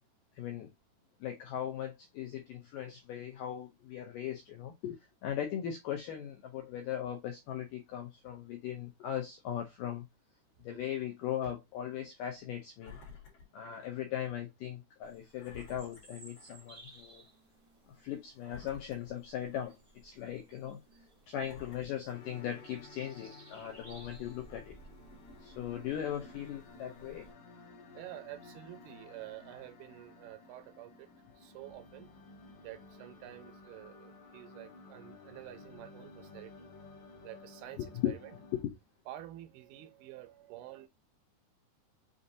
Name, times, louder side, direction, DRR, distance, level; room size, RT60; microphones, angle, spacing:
voice 1, 0.4-0.7 1.2-10.0 10.6-13.0 13.5-17.2 18.0-19.7 20.0-20.8 21.3-24.8 25.4-27.3 37.8-38.1 38.5-38.7, left 10 dB, 85° left, 1.9 m, -38 dB
Engine, 12.8-14.1 14.5-14.6 15.4-16.7 17.1-17.3 18.4-19.9 20.5-20.6 21.4-22.8 23.5-23.6, left 5 dB, 55° left, 1.9 m, -54 dB
sound 1, 15.0-27.3, right 2 dB, 45° right, 0.4 m, -58 dB
sound 2, 22.1-38.6, left 3 dB, 70° left, 2.0 m, -54 dB
voice 2, 27.9-31.1 31.4-32.1 32.6-36.7 37.2-38.3 39.1-40.9, right 14 dB, 80° right, 2.4 m, -49 dB
6.2 x 2.7 x 2.6 m
omnidirectional pair, 4.5 m